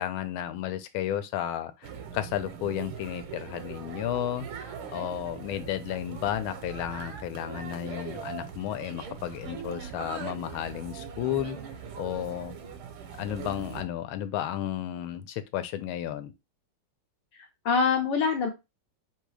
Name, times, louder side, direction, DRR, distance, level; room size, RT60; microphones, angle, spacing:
voice 1, 0.0-11.6 12.0-12.5 13.2-16.3, left 11 dB, 90° left, 1.4 m, -33 dB
sound 1, 1.8-13.8, right 7 dB, 90° right, 1.7 m, -41 dB
voice 2, 17.4-18.5, left 5 dB, 70° left, 1.3 m, -25 dB
3.9 x 2.8 x 4.8 m
omnidirectional pair, 2.2 m